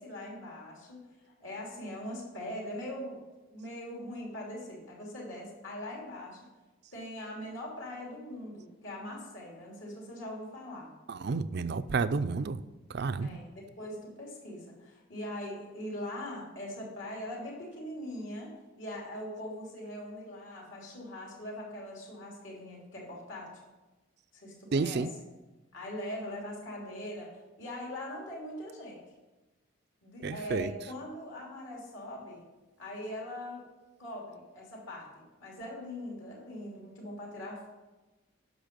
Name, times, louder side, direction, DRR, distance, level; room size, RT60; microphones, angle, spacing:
voice 1, 0.0-3.2 3.5-6.5 6.9-10.9 13.2-23.6 24.3-25.0 25.7-27.3 27.6-29.0 30.0-32.4 32.8-33.6 34.0-37.7, left 1 dB, 65° left, -2 dB, 3.0 m, -41 dB
voice 2, 11.1-12.6 12.9-13.4 24.7-25.1 30.2-30.7, right 4 dB, 50° right, 13 dB, 0.4 m, -30 dB
10.5 x 6.5 x 5.2 m, 1.2 s
head